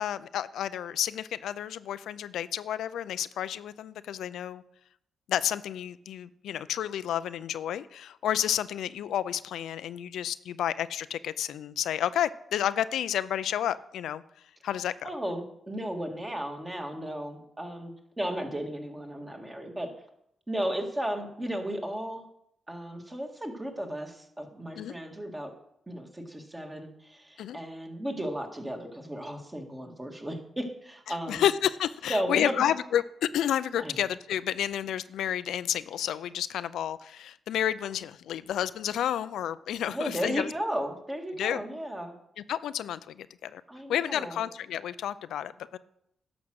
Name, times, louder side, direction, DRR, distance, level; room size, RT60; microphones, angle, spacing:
voice 1, 0.0-4.6 5.3-14.2 14.6-14.9 24.8-24.9 27.4-27.6 31.3-40.5 41.4-41.6 42.5-43.6 43.9-45.8, left 10 dB, 90° left, 14 dB, 0.4 m, -30 dB
voice 2, 15.0-19.9 20.5-22.3 22.7-25.5 25.9-31.4 32.1-32.7 33.8-34.0 39.9-42.1 43.7-44.4, equal, 20° right, 3 dB, 2.0 m, -34 dB
11.0 x 6.2 x 6.3 m, 0.76 s
cardioid pair, 75°, 0 cm